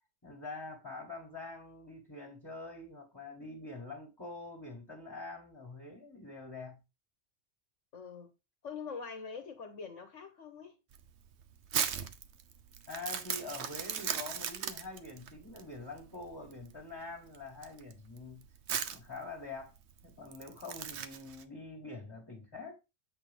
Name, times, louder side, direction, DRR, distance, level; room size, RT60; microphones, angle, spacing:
voice 1, 0.2-6.8 12.9-18.5 18.8-19.7 20.0-22.7, left 3 dB, 15° left, 1.9 m, -45 dB
voice 2, 7.9-8.3 8.6-10.8, left 5 dB, 65° left, 1.5 m, -44 dB
Crumpling crinkling, 10.9-21.4, right 8 dB, 60° right, 1.0 m, -39 dB
8.3 x 5.1 x 3.6 m
omnidirectional pair, 1.4 m